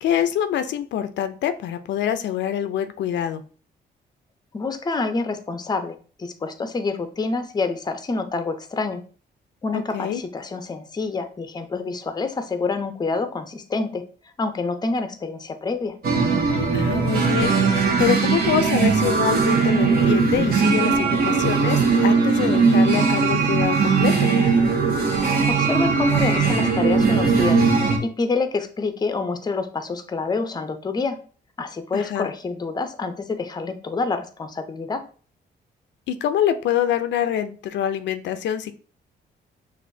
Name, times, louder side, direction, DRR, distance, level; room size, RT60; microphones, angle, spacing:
voice 1, 0.0-3.4 9.7-10.2 16.7-24.3 31.9-32.3 36.1-38.7, left 10 dB, 85° left, 10 dB, 0.5 m, -25 dB
voice 2, 4.5-9.0 9.6-14.1 14.4-16.0 25.5-27.6 28.0-31.2 31.6-35.0, left 3 dB, 20° left, 9 dB, 0.5 m, -27 dB
sound 1, 16.0-28.0, right 5 dB, 55° right, 1.1 m, -19 dB
6.2 x 2.5 x 2.7 m, 0.40 s
cardioid pair, 110°, 18 cm